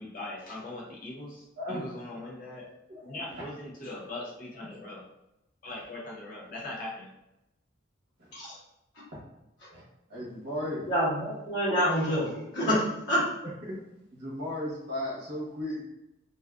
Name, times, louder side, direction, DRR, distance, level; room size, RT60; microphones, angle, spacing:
voice 1, 0.0-2.7 3.0-5.1 5.6-7.1, left 2 dB, 45° left, -3 dB, 0.6 m, -40 dB
voice 2, 10.1-10.8 13.6-13.8 14.1-15.8, left 1 dB, 50° right, -5 dB, 0.9 m, -35 dB
voice 3, 10.9-13.3, equal, 65° left, -9 dB, 1.1 m, -27 dB
2.5 x 2.3 x 2.3 m, 0.89 s
head